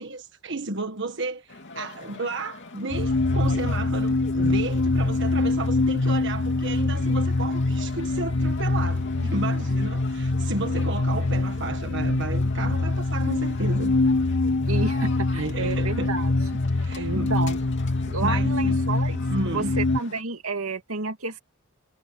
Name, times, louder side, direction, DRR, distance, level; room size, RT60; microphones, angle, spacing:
voice 1, 0.0-13.9 15.3-16.1 16.7-17.3 18.2-18.8 19.3-19.8, right 3 dB, 60° right, 1.5 m, -33 dB
sound 1, 1.5-20.2, left 3 dB, 55° left, 3.0 m, -44 dB
sound 2, 2.9-20.0, left 2 dB, 90° left, 1.2 m, -24 dB
voice 2, 14.6-16.3 17.0-17.6 18.1-21.4, right 3 dB, 90° right, 2.5 m, -30 dB
head